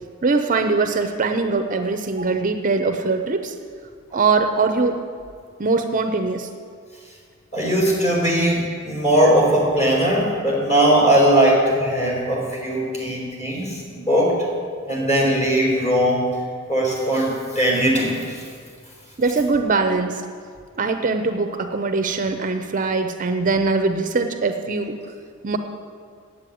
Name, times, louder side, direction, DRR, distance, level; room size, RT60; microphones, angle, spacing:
voice 1, 0.2-3.5 4.1-5.0 5.6-6.5 19.2-20.3 20.8-25.0 25.4-25.6, right 3 dB, 40° right, 7 dB, 0.6 m, -22 dB
voice 2, 7.5-14.4 14.9-16.3 16.7-18.4, right 1 dB, 35° left, -3 dB, 4.0 m, -19 dB
9.3 x 8.1 x 9.1 m, 2.1 s
head